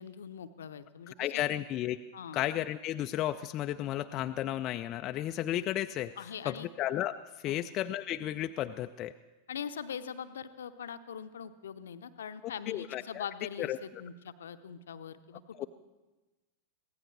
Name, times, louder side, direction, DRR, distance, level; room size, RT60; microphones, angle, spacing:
voice 1, 0.0-1.4 2.1-2.4 6.2-6.7 7.5-7.7 9.5-15.7, left 7 dB, 65° left, 11 dB, 0.7 m, -42 dB
voice 2, 1.2-2.0 2.3-6.1 6.5-9.1 12.7-13.2 13.6-13.8 15.6-15.7, left 13 dB, 35° left, 8 dB, 0.4 m, -33 dB
24.0 x 16.5 x 3.3 m, 1.2 s
figure-of-eight pair, 90°, 0 cm